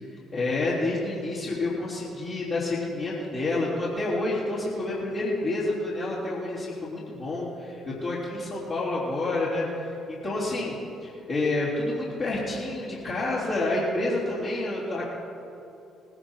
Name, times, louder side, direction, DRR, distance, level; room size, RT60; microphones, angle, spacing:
voice 1, 0.3-15.0, left 2 dB, 60° left, -9 dB, 3.5 m, -29 dB
19.5 x 10.5 x 4.5 m, 2.9 s
hypercardioid pair, 50°, 0 cm